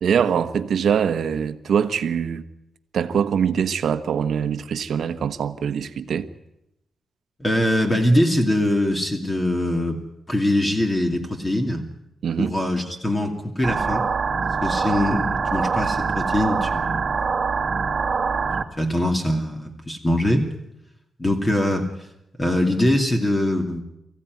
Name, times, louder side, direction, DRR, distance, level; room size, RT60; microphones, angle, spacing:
voice 1, 0.0-2.4 2.9-6.3 12.2-12.5, right 7 dB, 75° right, 1.2 m, -23 dB
voice 2, 7.4-10.0 10.3-11.9 12.4-14.0 14.6-17.1 18.8-20.5 21.2-21.9 22.4-23.8, left 1 dB, 20° left, 2.5 m, -22 dB
sound 1, 13.6-18.6, right 5 dB, 45° right, 1.4 m, -24 dB
23.5 x 15.5 x 9.5 m
wide cardioid pair, 120°, 0 cm